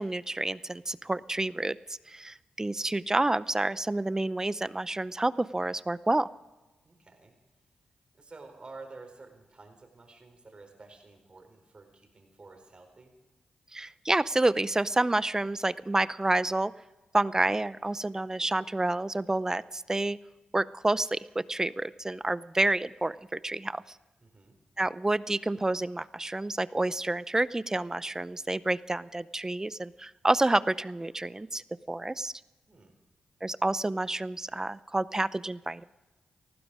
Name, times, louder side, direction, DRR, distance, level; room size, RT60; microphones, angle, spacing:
voice 1, 0.0-1.8 2.1-6.3 13.7-16.7 17.1-20.2 20.5-23.8 24.8-31.6 31.9-32.3 33.4-35.8, right 2 dB, 20° right, 18 dB, 0.6 m, -29 dB
voice 2, 6.8-7.3 8.2-13.1 24.2-24.6 32.7-32.9, right 3 dB, 40° right, 4 dB, 4.5 m, -50 dB
19.0 x 15.0 x 4.9 m, 1.2 s
supercardioid pair, 50°, 3 cm